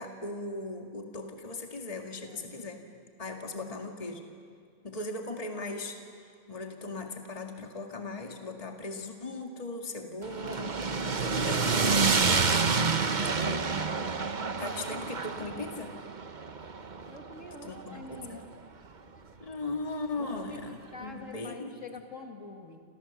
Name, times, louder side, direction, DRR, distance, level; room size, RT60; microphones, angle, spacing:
voice 1, 0.0-2.8 3.2-4.3 4.8-6.0 6.5-10.8 11.1-12.0 13.4-13.7 14.6-16.0 17.6-18.4 19.4-21.7, left 2 dB, 25° left, 2 dB, 2.1 m, -38 dB
voice 2, 3.4-3.8 17.1-18.5 20.2-22.8, left 3 dB, 60° left, 3 dB, 2.6 m, -47 dB
sound 1, 10.2-18.5, right 4 dB, 35° right, 1.1 m, -28 dB
29.0 x 28.0 x 7.2 m, 2.1 s
omnidirectional pair, 1.5 m